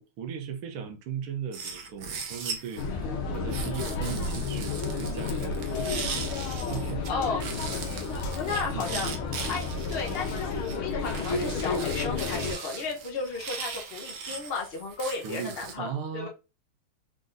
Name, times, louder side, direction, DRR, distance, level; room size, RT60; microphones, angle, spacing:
voice 1, 0.0-7.0 8.7-9.1 15.2-16.3, right 7 dB, 85° right, 1.7 m, -38 dB
sound 1, 1.5-2.9 3.5-7.1 7.4-15.7, right 5 dB, 60° right, 1.3 m, -39 dB
sound 2, 2.8-12.5, left 4 dB, 85° left, 1.8 m, -31 dB
sound 3, 4.8-11.4, left 7 dB, 70° left, 1.7 m, -48 dB
voice 2, 7.1-7.5 7.9-9.1 9.4-16.3, left 4 dB, 45° left, 0.7 m, -34 dB
4.8 x 3.9 x 2.6 m
omnidirectional pair, 2.3 m